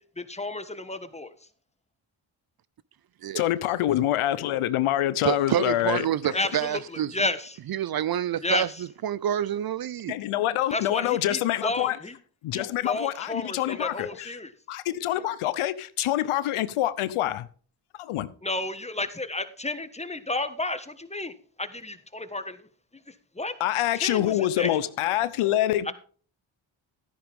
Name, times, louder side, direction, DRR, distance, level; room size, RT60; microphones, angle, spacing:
voice 1, 0.2-1.3 6.3-6.8 7.1-7.6 8.4-8.7 10.7-12.1 12.5-14.5 18.4-22.7 23.1-23.5 24.0-24.8 25.8-25.9, left 2 dB, 15° left, 1.5 m, -32 dB
voice 2, 3.3-6.1 6.4-6.5 10.1-12.0 12.4-14.3 14.7-17.5 18.0-18.3 23.6-25.9, left 13 dB, 80° left, 0.8 m, -26 dB
voice 3, 5.2-7.2 7.7-8.7 9.0-10.1, right 10 dB, 50° right, 0.5 m, -27 dB
12.5 x 10.5 x 3.6 m
supercardioid pair, 50°, 49 cm